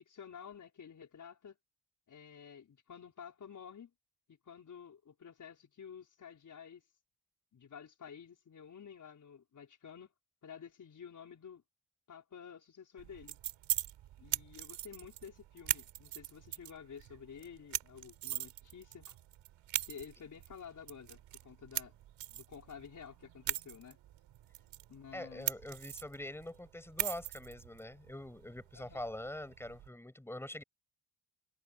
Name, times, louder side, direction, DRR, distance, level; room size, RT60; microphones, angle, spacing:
voice 1, 0.0-1.6 2.1-3.9 4.4-6.8 7.5-10.1 10.4-11.6 12.1-13.4 14.2-19.2 19.9-21.9 22.3-24.0 24.9-25.5 28.7-29.0, left 7 dB, 40° left, 5.1 m, -51 dB
sound 1, 13.0-29.9, right 13 dB, 85° right, 6.6 m, -42 dB
voice 2, 25.1-30.6, left 1 dB, 5° left, 6.5 m, -44 dB
cardioid pair, 140°, 45 cm